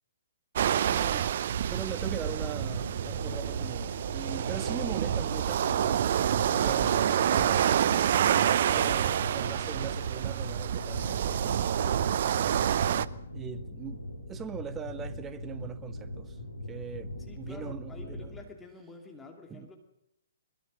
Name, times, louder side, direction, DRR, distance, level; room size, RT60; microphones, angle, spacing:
sound 1, 0.6-13.1, right 9 dB, 50° right, 0.7 m, -27 dB
voice 1, 0.9-1.3 1.7-8.2 8.6-12.3 13.3-16.4 16.7-18.4 19.5-19.7, right 8 dB, 15° right, 1.3 m, -41 dB
sound 2, 2.0-18.4, left 1 dB, 85° left, 5.4 m, -41 dB
voice 2, 17.3-19.8, left 2 dB, 10° left, 2.7 m, -48 dB
23.0 x 22.0 x 6.4 m
figure-of-eight pair, 125°, 0 cm